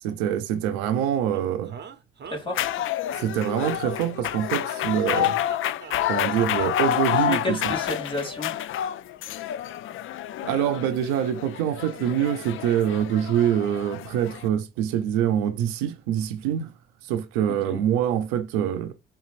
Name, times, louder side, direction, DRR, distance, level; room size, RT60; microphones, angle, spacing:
voice 1, 0.0-1.8 3.1-5.4 6.1-7.7 10.4-16.7 17.0-18.9, right 10 dB, 75° right, 0.7 m, -25 dB
sound 1, 1.3-3.1 3.4-4.5 5.1-6.3 6.6-6.7, right 6 dB, 35° right, 0.9 m, -43 dB
voice 2, 2.3-2.6 7.1-8.5 17.5-17.8, left 2 dB, 15° left, 2.6 m, -31 dB
sound 2, 2.5-14.5, left 11 dB, 45° left, 0.4 m, -29 dB
4.3 x 3.7 x 2.5 m
hypercardioid pair, 50°, 29 cm